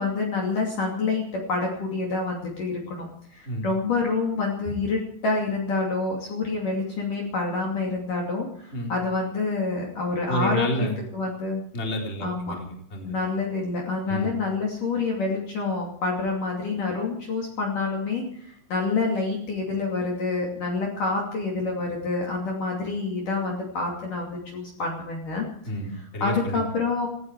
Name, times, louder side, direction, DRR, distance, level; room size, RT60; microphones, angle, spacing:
voice 1, 0.0-10.9 11.1-11.6 12.2-12.6 13.0-25.5 26.2-27.1, left 3 dB, 45° left, -1 dB, 3.7 m, -27 dB
voice 2, 10.3-11.0 11.7-13.2 14.1-14.4 25.7-26.6, equal, 15° left, 0 dB, 3.5 m, -30 dB
18.5 x 16.0 x 4.8 m, 0.67 s
omnidirectional pair, 5.7 m